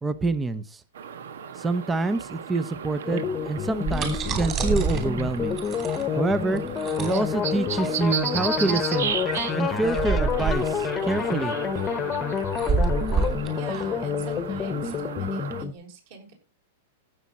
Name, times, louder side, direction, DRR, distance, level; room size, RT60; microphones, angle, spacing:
voice 1, 0.0-0.8 1.6-5.6 6.2-6.6 7.0-9.1 9.5-11.6, right 3 dB, 10° right, 14 dB, 0.7 m, -26 dB
sound 1, 1.0-15.6, right 8 dB, 80° right, 1.5 m, -35 dB
sound 2, 3.0-15.7, left 7 dB, 15° left, 1.1 m, -29 dB
sound 3, 3.6-15.0, right 4 dB, 25° right, 3.0 m, -29 dB
voice 2, 13.6-16.3, right 4 dB, 50° right, 3 dB, 6.2 m, -43 dB
15.5 x 7.4 x 4.2 m, 0.30 s
supercardioid pair, 155°, 0 cm